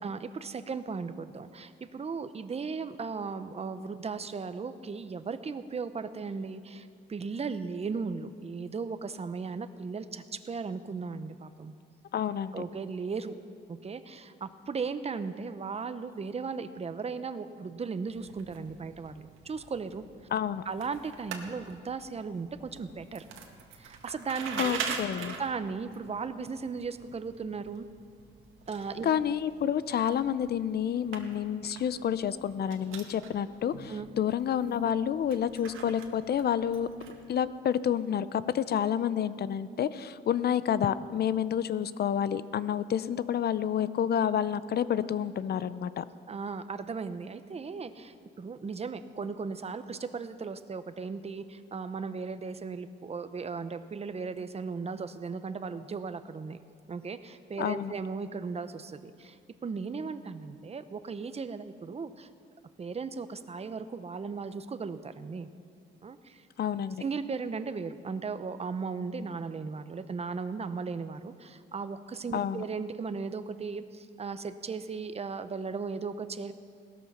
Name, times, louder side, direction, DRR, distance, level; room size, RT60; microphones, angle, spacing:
voice 1, 0.0-11.7 12.5-13.4 13.7-20.0 20.6-23.2 23.8-25.0 25.4-27.9 28.7-29.1 33.9-34.1 46.3-56.6 56.9-59.4 59.6-62.3 62.8-65.5 66.0-66.5 67.0-76.5, right 5 dB, 30° right, 11 dB, 0.9 m, -36 dB
voice 2, 12.1-12.6 20.3-20.6 24.6-25.3 29.0-46.0 57.6-57.9 66.6-67.0 72.3-72.6, left 9 dB, 55° left, 15 dB, 0.7 m, -29 dB
sound 1, 18.1-37.4, right 6 dB, 85° right, 1.8 m, -44 dB
18.0 x 13.5 x 5.7 m, 2.2 s
cardioid pair, 90°, 20 cm